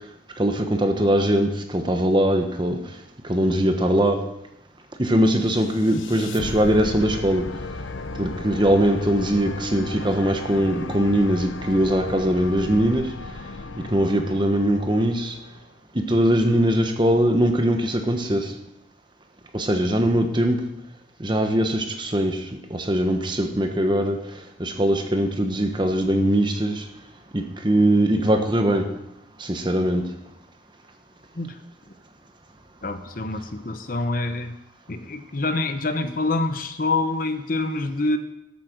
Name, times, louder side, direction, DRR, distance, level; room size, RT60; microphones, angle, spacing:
voice 1, 0.4-2.8 3.2-4.2 5.0-7.5 8.2-13.1 13.9-15.4 15.9-18.5 19.5-20.6 21.2-24.2 24.6-26.8 27.3-28.9 29.4-30.1, right 1 dB, 25° right, 5 dB, 1.2 m, -21 dB
sound 1, 5.4-15.6, left 3 dB, 85° left, 0.8 m, -36 dB
voice 2, 32.8-34.5 34.9-38.2, left 2 dB, 45° left, 9 dB, 0.8 m, -26 dB
13.0 x 8.3 x 6.2 m, 0.83 s
head